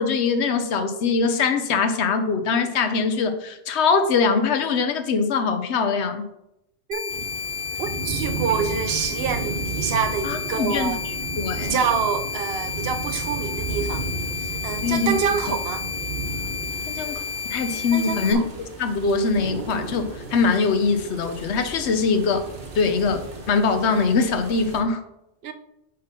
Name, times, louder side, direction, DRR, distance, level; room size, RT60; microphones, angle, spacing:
voice 1, 0.0-6.3 10.2-11.8 14.8-15.1 16.9-17.2 17.5-22.4 22.7-25.0, left 4 dB, 75° left, 1.0 m, -22 dB
sound 1, 6.9-18.3, left 5 dB, 30° left, 0.4 m, -32 dB
voice 2, 6.9-7.2 7.8-11.0 11.6-14.1 14.4-15.8 17.9-18.4 25.4-25.5, right 6 dB, 70° right, 0.8 m, -27 dB
sound 2, 7.1-24.8, right 3 dB, 45° right, 1.2 m, -34 dB
5.4 x 5.2 x 4.0 m
omnidirectional pair, 1.1 m